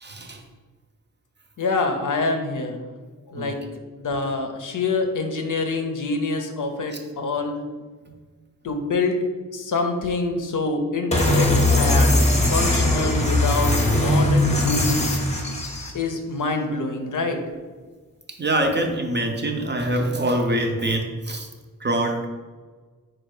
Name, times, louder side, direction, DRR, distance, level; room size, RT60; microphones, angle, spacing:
voice 1, 0.0-0.4 3.3-3.5 18.4-21.5 21.8-22.3, right 1 dB, 30° right, 3 dB, 0.5 m, -24 dB
voice 2, 1.6-2.8 3.3-3.6 4.0-7.6 8.6-9.3 9.5-15.2 15.9-17.4, left 3 dB, 60° left, 5 dB, 0.6 m, -26 dB
sound 1, 11.1-15.9, left 1 dB, 20° left, 0.6 m, -20 dB
4.4 x 2.4 x 4.7 m, 1.4 s
wide cardioid pair, 90°, 34 cm